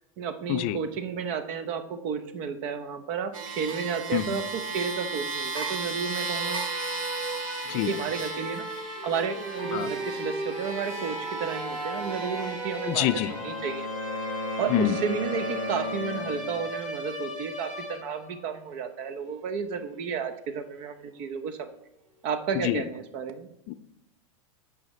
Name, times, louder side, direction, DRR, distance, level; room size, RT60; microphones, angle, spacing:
voice 1, 0.2-6.7 7.9-8.6 9.0-13.9 14.6-21.7 22.2-23.5, right 6 dB, 45° right, 10 dB, 0.8 m, -32 dB
sound 1, 3.3-13.8 14.5-14.6, right 3 dB, 85° right, 1.4 m, -35 dB
sound 2, 6.3-18.4, equal, 5° right, 2.4 m, -37 dB
Wind instrument woodwind instrument, 12.8-16.6, left 1 dB, 70° right, 1.6 m, -35 dB
voice 2, 12.9-13.3 14.7-15.0 22.6-22.8 23.7-23.8, left 13 dB, 40° left, 14 dB, 0.4 m, -26 dB
9.5 x 4.9 x 3.1 m, 0.83 s
hypercardioid pair, 120°, 17 cm